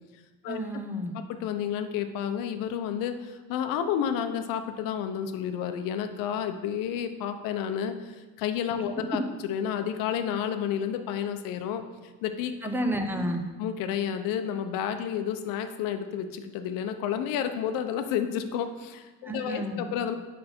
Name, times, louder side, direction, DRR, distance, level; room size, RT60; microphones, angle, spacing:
voice 1, 0.5-1.1 12.6-13.4 19.2-19.8, equal, 5° right, 4 dB, 0.6 m, -31 dB
voice 2, 1.3-11.8 12.2-12.5 13.6-20.1, left 9 dB, 80° left, 8 dB, 0.8 m, -31 dB
7.6 x 5.5 x 4.4 m, 1.2 s
cardioid pair, 145°, 33 cm